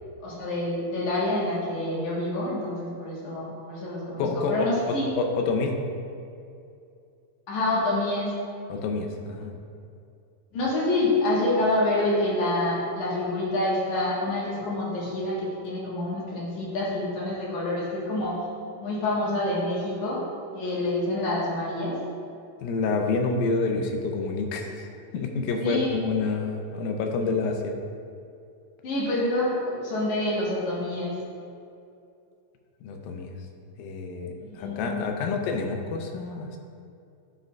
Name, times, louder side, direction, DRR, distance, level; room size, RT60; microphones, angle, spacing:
voice 1, 0.2-5.1 7.5-8.3 10.5-18.4 18.8-20.2 20.5-22.0 25.6-26.0 28.8-31.2 34.4-35.1, left 1 dB, 65° left, -6 dB, 2.5 m, -27 dB
voice 2, 4.2-5.8 8.7-9.5 22.6-24.9 25.1-27.8 32.8-33.4 33.8-36.6, left 4 dB, 90° left, 4 dB, 2.4 m, -28 dB
9.3 x 6.3 x 2.3 m, 2.5 s
omnidirectional pair, 4.1 m